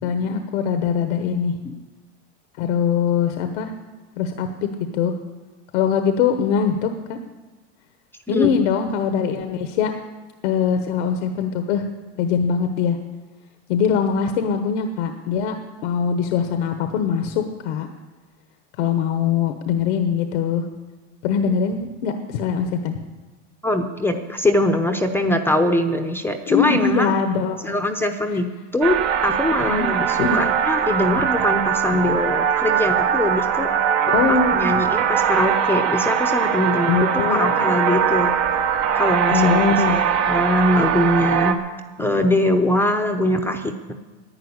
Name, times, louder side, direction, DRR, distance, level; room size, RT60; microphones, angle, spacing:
voice 1, 0.0-1.6 2.6-3.7 4.2-4.5 4.9-5.1 5.7-7.2 8.3-9.9 10.4-11.9 12.2-13.0 13.7-15.5 15.8-17.9 18.8-20.6 21.2-23.0 26.5-27.8 29.6-29.9 30.2-30.4 31.9-32.0 34.1-34.7 36.9-37.7 39.3-40.2 42.0-42.1, left 7 dB, 85° left, 7 dB, 1.2 m, -22 dB
voice 2, 23.6-27.1 27.6-33.7 34.5-38.3 38.9-41.6 42.0-43.9, left 1 dB, 5° left, 4 dB, 0.8 m, -22 dB
sound 1, 28.8-41.5, right 8 dB, 50° right, 1.3 m, -21 dB
11.5 x 9.1 x 9.7 m, 1.2 s
supercardioid pair, 130°, 34 cm